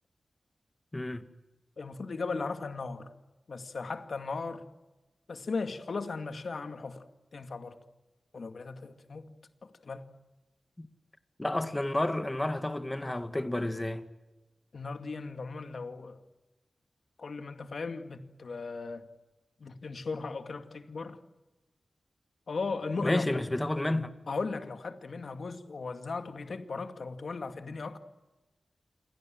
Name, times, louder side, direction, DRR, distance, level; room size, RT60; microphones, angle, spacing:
voice 1, 0.9-1.3 10.8-10.9 11.4-14.1 23.0-24.1, left 1 dB, 20° left, 1.9 m, -30 dB
voice 2, 1.8-3.1 3.5-4.7 5.3-7.0 7.3-7.8 8.3-9.3 9.6-10.1 14.7-16.2 17.2-19.1 19.6-21.2 22.5-23.3 24.3-28.0, left 4 dB, 65° left, 2.2 m, -37 dB
28.0 x 23.5 x 7.8 m
wide cardioid pair, 75°, 0 cm